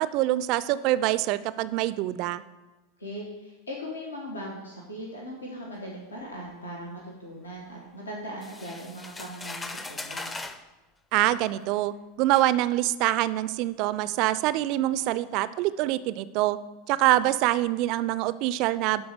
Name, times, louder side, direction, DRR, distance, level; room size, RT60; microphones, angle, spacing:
voice 1, 0.0-2.4 11.1-16.6 16.9-19.0, right 15 dB, 45° right, 16 dB, 0.3 m, -25 dB
voice 2, 3.0-10.4, equal, 80° left, -2 dB, 1.3 m, -39 dB
sound 1, 8.4-10.6 11.6-11.7 12.3-12.5, left 2 dB, 15° left, 0.5 m, -39 dB
12.0 x 4.1 x 4.5 m, 1.1 s
figure-of-eight pair, 85°, 0 cm